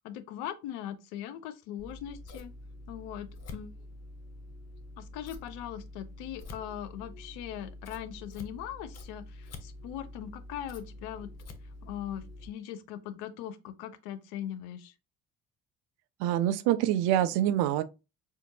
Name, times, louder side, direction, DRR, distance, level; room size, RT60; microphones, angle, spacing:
voice 1, 0.0-2.5 2.9-3.7 5.0-11.3 11.8-14.9, left 11 dB, 70° left, 0.6 m, -40 dB
Scissors, 1.8-12.5, left 2 dB, 40° left, 0.8 m, -46 dB
voice 2, 16.2-17.8, right 12 dB, 65° right, 0.6 m, -25 dB
4.4 x 2.5 x 2.7 m
hypercardioid pair, 50°, 42 cm